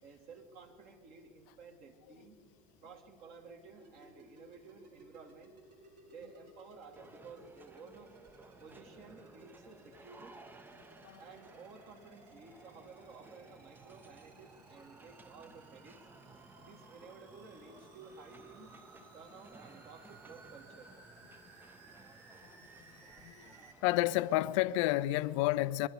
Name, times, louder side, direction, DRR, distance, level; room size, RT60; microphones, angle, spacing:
voice 1, 0.0-2.5 2.8-5.5 6.1-8.2 8.6-10.3 11.2-16.0 16.6-18.7 19.1-20.9, right 4 dB, 45° right, 1.8 m, -54 dB
sound 1, 3.7-23.7, right 3 dB, 75° right, 2.4 m, -60 dB
sound 2, 7.0-24.7, right 3 dB, 10° right, 0.6 m, -58 dB
voice 2, 23.8-25.9, left 17 dB, 50° left, 0.5 m, -30 dB
23.0 x 11.5 x 5.1 m
figure-of-eight pair, 80°, 21 cm